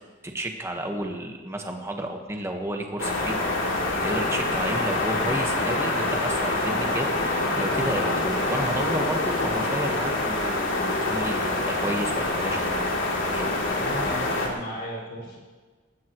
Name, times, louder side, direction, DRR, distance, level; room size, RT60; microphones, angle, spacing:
voice 1, 0.2-3.4 4.0-12.9 13.3-13.5, right 1 dB, 15° right, 3 dB, 1.4 m, -31 dB
sound 1, 3.0-14.5, left 2 dB, 80° left, 3.2 m, -26 dB
voice 2, 13.8-15.4, equal, 55° left, -4 dB, 5.7 m, -36 dB
20.0 x 18.5 x 3.1 m, 1.4 s
head